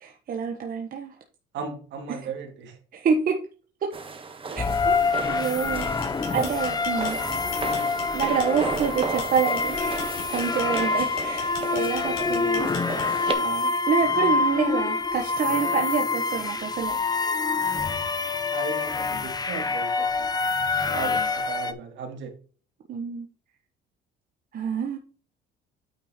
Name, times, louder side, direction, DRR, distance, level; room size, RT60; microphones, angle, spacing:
voice 1, 0.0-1.2 2.1-2.3 2.9-3.4 3.8-3.9 4.5-5.0 5.3-5.9 6.3-7.2 8.1-10.0 10.3-12.8 13.4-17.0 17.6-17.8 22.9-23.3 24.5-25.0, right 6 dB, 45° right, 1.2 m, -27 dB
voice 2, 1.5-2.8 12.0-12.5 18.5-20.3 20.9-22.3, right 5 dB, 70° right, 2.8 m, -36 dB
sound 1, 3.9-13.3, right 4 dB, 25° right, 1.4 m, -35 dB
sound 2, 4.6-21.7, left 4 dB, 20° left, 0.8 m, -26 dB
sound 3, 5.7-13.3, left 7 dB, 85° left, 3.9 m, -39 dB
9.2 x 4.5 x 4.3 m
cardioid pair, 115°, 20 cm